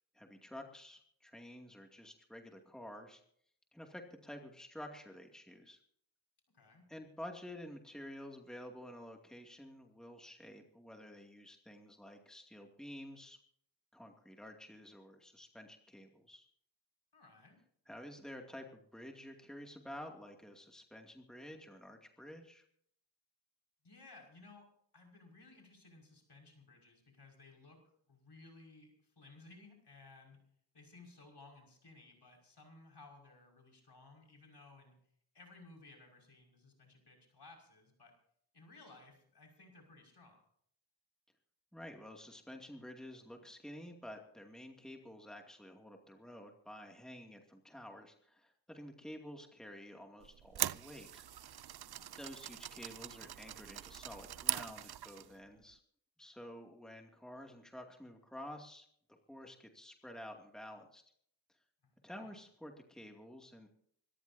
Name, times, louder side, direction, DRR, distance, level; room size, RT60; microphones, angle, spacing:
voice 1, 0.1-3.2 3.7-5.8 6.9-13.4 13.9-16.5 17.9-22.6 41.7-51.2 52.2-55.8 56.2-58.8 59.3-61.0 62.0-63.7, left 1 dB, ahead, 2 dB, 2.5 m, -50 dB
voice 2, 6.5-6.9 17.1-17.6 23.8-24.7 24.9-27.8 28.1-30.4 30.7-35.0 35.3-38.1 38.5-40.4 51.8-52.2 61.8-62.4, left 3 dB, 60° left, 1 dB, 5.9 m, -59 dB
sound 1, 50.2-55.3, right 11 dB, 55° right, 0.6 m, -41 dB
26.0 x 14.0 x 2.8 m, 0.65 s
cardioid pair, 50°, 46 cm